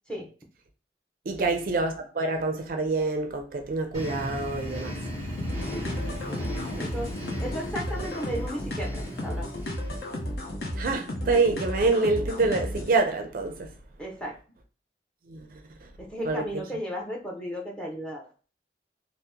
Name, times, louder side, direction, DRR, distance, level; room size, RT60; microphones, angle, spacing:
voice 1, 1.3-5.0 10.7-13.7 15.3-15.5 16.3-16.4, right 3 dB, 50° right, 0.4 m, -26 dB
sound 1, 3.9-10.4, left 1 dB, 25° left, 1.2 m, -37 dB
sound 2, 5.4-13.0, left 1 dB, 60° left, 0.7 m, -33 dB
voice 2, 6.7-9.5 14.0-14.4 16.0-18.3, equal, 5° left, 0.6 m, -35 dB
2.8 x 2.0 x 3.4 m
head